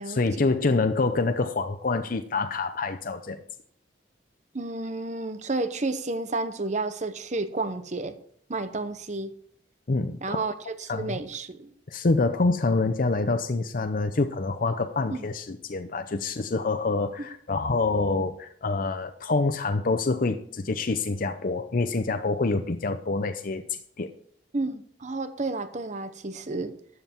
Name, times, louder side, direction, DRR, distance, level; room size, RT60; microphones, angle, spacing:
voice 1, 0.0-3.4 9.9-10.4 10.9-11.2 11.9-24.1, left 3 dB, 50° left, 8 dB, 0.6 m, -26 dB
voice 2, 4.5-8.2 8.5-9.4 10.2-11.7 15.1-15.3 24.5-26.7, right 3 dB, 40° right, 11 dB, 0.9 m, -31 dB
12.5 x 7.8 x 4.5 m, 0.63 s
head